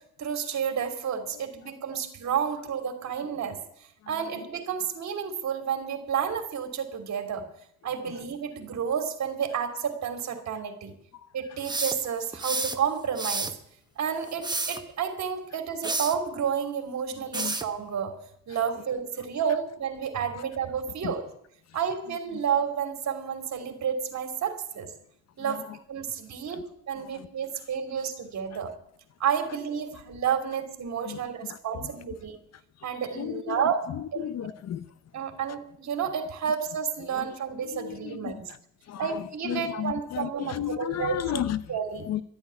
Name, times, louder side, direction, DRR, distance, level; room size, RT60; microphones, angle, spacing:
voice 1, 0.2-7.5 7.8-10.9 11.3-13.5 14.0-18.1 18.5-21.2 21.7-24.9 25.4-26.6 26.9-28.7 29.2-32.4 32.8-33.8 34.1-34.2 35.1-38.4 39.0-42.1, right 7 dB, 65° right, 3.0 m, -31 dB
sound 1, 11.7-12.8 13.2-13.6 14.3-14.8 15.8-16.2 17.3-17.7, right 3 dB, 15° right, 1.2 m, -30 dB
voice 2, 33.2-33.7 34.2-34.9 37.7-38.3 38.9-41.6 42.1-42.2, left 11 dB, 60° left, 0.8 m, -33 dB
13.0 x 8.9 x 9.5 m
cardioid pair, 90°, 30 cm